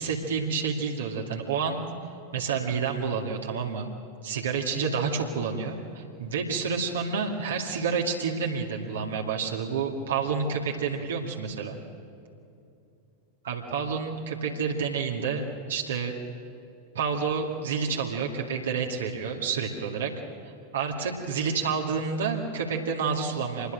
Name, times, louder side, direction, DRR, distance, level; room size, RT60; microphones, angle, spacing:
voice 1, 0.0-1.8 2.3-3.9 4.2-11.8 13.4-16.1 16.9-20.1 20.4-23.7, right 5 dB, 65° right, 0 dB, 2.2 m, -29 dB
26.0 x 21.0 x 6.6 m, 2.6 s
figure-of-eight pair, 90°, 0 cm